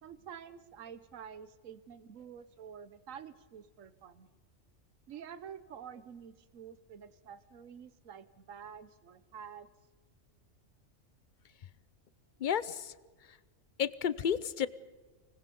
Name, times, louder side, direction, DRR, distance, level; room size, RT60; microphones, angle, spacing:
voice 1, 0.0-4.3 5.1-9.7, right 8 dB, 80° right, 14 dB, 1.3 m, -49 dB
voice 2, 12.4-12.9 13.8-14.7, left 8 dB, 45° left, 17 dB, 0.7 m, -31 dB
26.0 x 20.5 x 5.3 m, 1.4 s
omnidirectional pair, 1.3 m